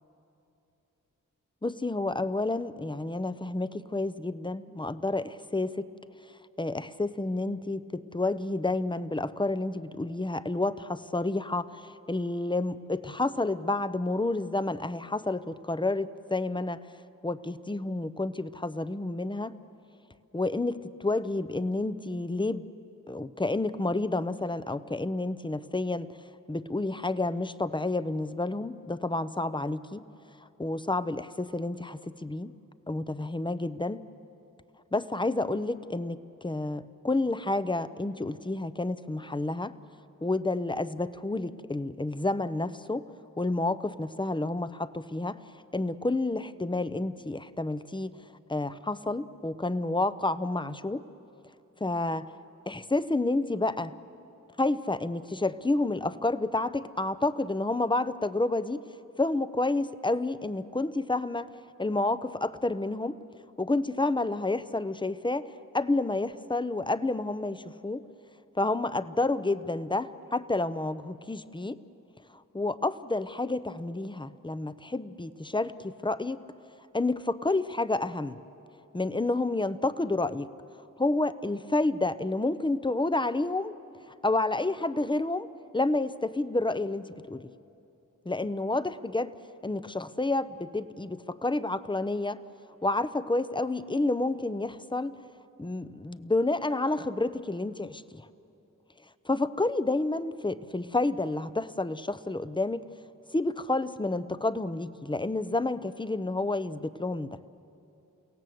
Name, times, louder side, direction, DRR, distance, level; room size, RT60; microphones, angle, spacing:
voice 1, 1.6-5.9 6.6-16.8 17.2-19.5 20.3-22.7 23.1-26.1 26.5-30.0 30.6-32.5 32.9-34.0 34.9-39.7 40.2-43.1 43.4-45.4 45.7-48.2 48.5-51.0 51.8-52.3 52.7-53.9 54.6-58.8 59.2-61.5 61.8-63.2 63.6-65.5 65.7-68.0 68.5-71.8 72.5-76.4 76.9-78.4 78.9-80.5 81.0-83.7 84.2-85.5 85.7-87.5 88.3-89.3 89.6-92.4 92.8-95.1 95.6-98.3 99.2-102.8 103.3-107.4, left 2 dB, 15° left, 14 dB, 0.7 m, -29 dB
29.5 x 17.0 x 7.8 m, 2.8 s
cardioid pair, 45°, 33 cm